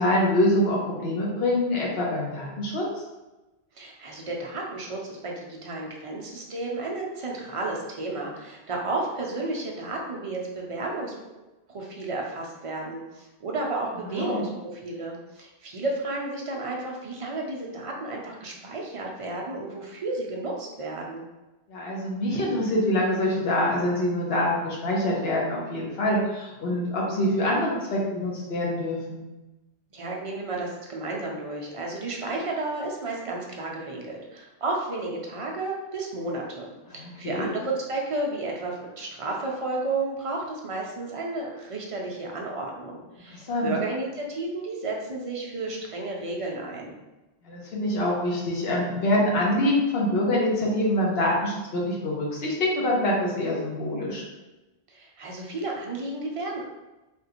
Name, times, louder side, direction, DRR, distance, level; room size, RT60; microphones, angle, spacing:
voice 1, 0.0-2.8 14.1-14.4 21.7-29.2 37.0-37.5 43.3-43.7 47.4-54.2, left 1 dB, 70° left, -3 dB, 1.0 m, -25 dB
voice 2, 3.7-11.1 11.7-21.2 29.9-47.0 54.9-56.6, right 2 dB, 45° right, -1 dB, 0.4 m, -32 dB
3.5 x 2.4 x 2.9 m, 1.1 s
omnidirectional pair, 1.1 m